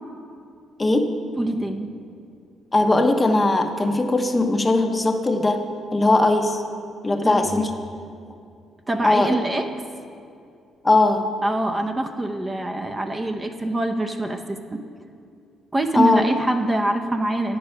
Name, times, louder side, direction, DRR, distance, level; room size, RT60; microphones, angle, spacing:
voice 1, 0.8-1.2 2.7-6.6 7.0-7.7 9.0-9.4 10.8-11.3 15.9-16.3, left 2 dB, 20° left, 6 dB, 0.7 m, -19 dB
voice 2, 1.4-1.9 7.2-7.3 8.9-9.7 11.4-14.8 15.7-17.6, right 1 dB, 20° right, 5 dB, 0.6 m, -24 dB
9.2 x 6.9 x 5.5 m, 2.4 s
cardioid pair, 90°, 0 cm